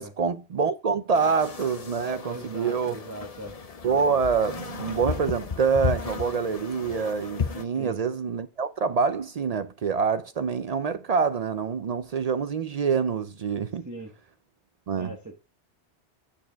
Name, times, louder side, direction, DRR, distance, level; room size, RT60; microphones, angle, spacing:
voice 1, 0.0-3.0 3.8-13.9 14.9-15.2, right 5 dB, 60° right, 0.4 m, -26 dB
sound 1, 1.1-7.6, left 5 dB, 40° left, 0.7 m, -34 dB
voice 2, 2.2-3.6 7.7-8.0 13.8-14.1 15.0-15.3, right 2 dB, 15° right, 1.0 m, -39 dB
sound 2, 4.7-8.7 9.1-9.9 11.7-12.2, left 1 dB, 80° left, 2.2 m, -50 dB
8.0 x 6.6 x 3.4 m
omnidirectional pair, 1.2 m